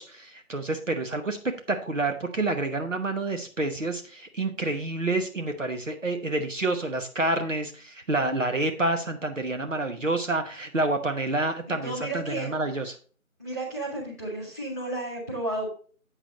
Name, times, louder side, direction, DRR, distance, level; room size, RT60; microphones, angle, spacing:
voice 1, 0.0-1.4 1.7-13.0, right 2 dB, 60° right, 6 dB, 1.1 m, -28 dB
voice 2, 11.7-12.5 13.4-15.7, right 1 dB, 15° right, -7 dB, 1.7 m, -33 dB
8.2 x 6.0 x 3.9 m, 0.41 s
figure-of-eight pair, 170°, 42 cm